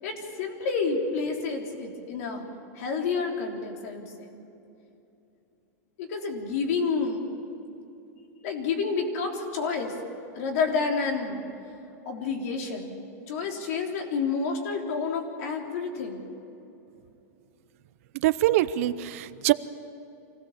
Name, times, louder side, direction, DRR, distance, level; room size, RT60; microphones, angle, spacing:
voice 1, 0.0-2.4 2.8-4.3 6.0-7.2 8.4-9.9 10.3-11.4 12.1-12.9 13.3-16.2, left 4 dB, 60° left, 2 dB, 3.5 m, -29 dB
voice 2, 18.2-19.5, right 15 dB, 55° right, 14 dB, 0.7 m, -23 dB
25.5 x 17.5 x 7.3 m, 2.8 s
supercardioid pair, 165°, 9 cm